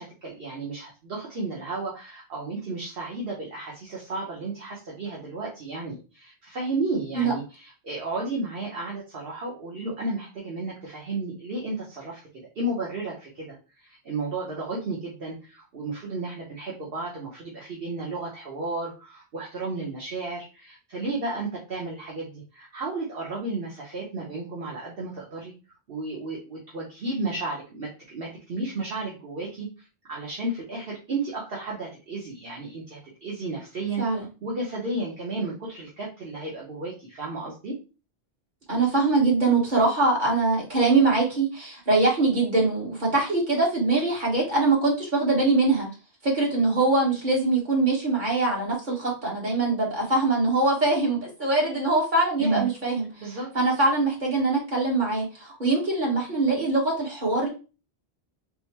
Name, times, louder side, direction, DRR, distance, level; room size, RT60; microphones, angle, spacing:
voice 1, 0.0-12.2 12.5-25.5 25.9-34.0 34.4-37.7 52.4-52.7 53.2-53.5, right 2 dB, 65° right, -4 dB, 1.1 m, -33 dB
voice 2, 38.7-45.9 46.2-53.1 53.6-57.5, right 3 dB, 50° right, -4 dB, 1.7 m, -23 dB
3.7 x 2.1 x 4.3 m, 0.32 s
omnidirectional pair, 1.0 m